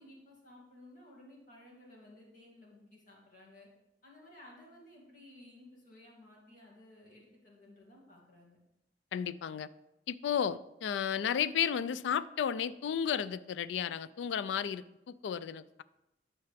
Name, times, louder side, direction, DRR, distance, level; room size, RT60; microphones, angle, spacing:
voice 1, 0.0-3.7 4.0-8.6, left 1 dB, 50° left, -4 dB, 2.3 m, -56 dB
voice 2, 9.1-9.7 10.1-15.8, left 8 dB, 90° left, 17 dB, 0.3 m, -33 dB
9.4 x 5.7 x 3.4 m, 0.91 s
head